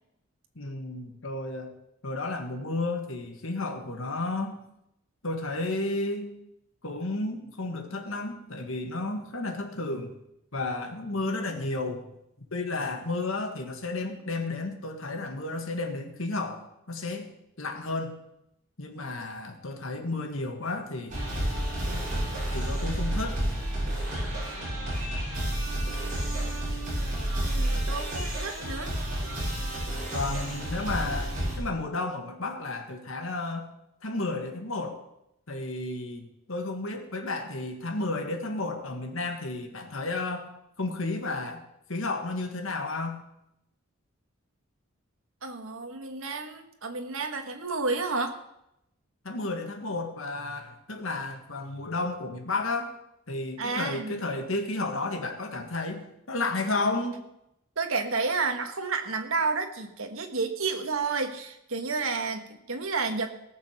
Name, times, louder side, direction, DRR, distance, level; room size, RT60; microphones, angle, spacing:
voice 1, 0.6-1.7 2.0-4.6 5.2-6.4 6.8-10.1 10.5-12.0 12.5-17.3 17.6-18.2 18.8-21.2 21.9-22.1 22.5-23.4 30.1-33.7 34.0-35.0 35.5-40.5 40.8-41.6 41.9-43.2 49.2-52.9 53.3-57.2, left 2 dB, 65° left, 5 dB, 1.8 m, -32 dB
sound 1, 21.1-31.6, right 1 dB, 35° right, 6.3 m, -30 dB
voice 2, 27.4-28.9 45.4-48.4 53.6-54.2 57.8-63.3, right 4 dB, 70° right, 6 dB, 1.5 m, -31 dB
18.0 x 6.8 x 6.6 m, 0.81 s
head